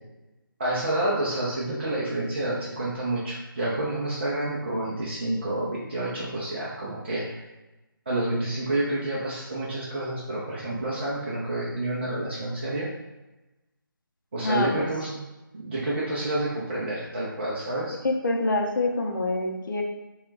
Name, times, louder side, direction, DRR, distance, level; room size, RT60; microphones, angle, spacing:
voice 1, 0.6-7.4 8.1-12.9 14.3-15.3 15.5-18.0, right 1 dB, 30° right, -7 dB, 0.5 m, -29 dB
voice 2, 14.4-14.9 18.0-19.8, left 2 dB, 60° left, 1 dB, 0.6 m, -26 dB
2.9 x 2.3 x 3.2 m, 1.0 s
figure-of-eight pair, 165°, 12 cm